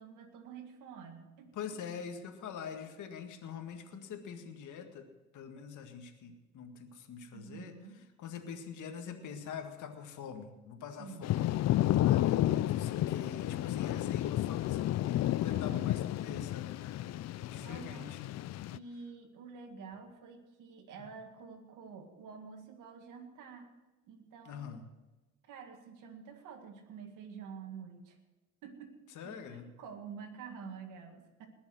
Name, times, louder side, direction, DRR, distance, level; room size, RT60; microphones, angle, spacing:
voice 1, 0.0-1.5 7.3-8.0 11.0-11.3 15.5-15.9 17.6-18.2 18.7-23.7 24.1-24.8 25.5-28.2 28.6-31.5, right 6 dB, 90° right, 4 dB, 2.0 m, -48 dB
voice 2, 1.5-5.1 5.3-7.7 8.2-18.3 24.5-24.8 29.2-29.7, left 7 dB, 80° left, 6 dB, 1.8 m, -44 dB
Thunder / Rain, 11.2-18.8, left 14 dB, 60° left, 0.5 m, -31 dB
20.5 x 7.1 x 6.3 m, 1.1 s
cardioid pair, 90°, 30 cm